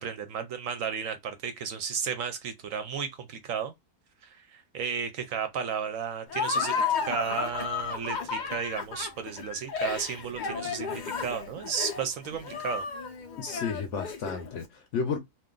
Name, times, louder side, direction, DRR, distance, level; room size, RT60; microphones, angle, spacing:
voice 1, 0.0-3.7 4.2-12.8, right 7 dB, 70° right, 0.9 m, -33 dB
Laughter, 6.3-14.6, left 6 dB, 90° left, 0.4 m, -33 dB
voice 2, 13.4-15.2, left 5 dB, 65° left, 0.8 m, -32 dB
2.5 x 2.4 x 3.6 m
omnidirectional pair, 1.6 m